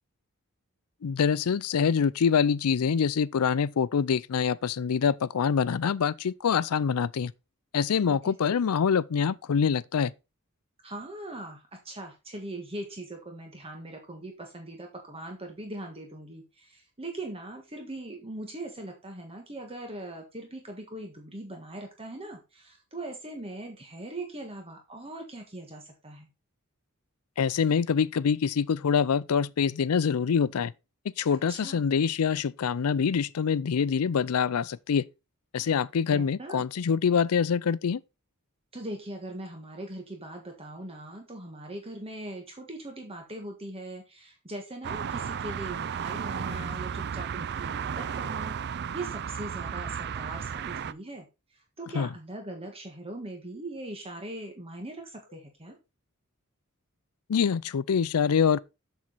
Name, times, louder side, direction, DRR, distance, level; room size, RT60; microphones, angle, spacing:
voice 1, 1.0-7.3 7.7-10.1 27.4-30.7 31.2-35.1 35.5-38.0 51.9-52.1 57.3-58.6, left 6 dB, 80° left, 0.4 m, -25 dB
voice 2, 8.0-8.5 10.8-26.3 31.5-31.8 36.1-36.6 38.7-55.8, right 1 dB, 25° right, 1.6 m, -40 dB
sound 1, 44.8-50.9, right 7 dB, 50° right, 0.4 m, -34 dB
7.6 x 7.2 x 4.1 m
head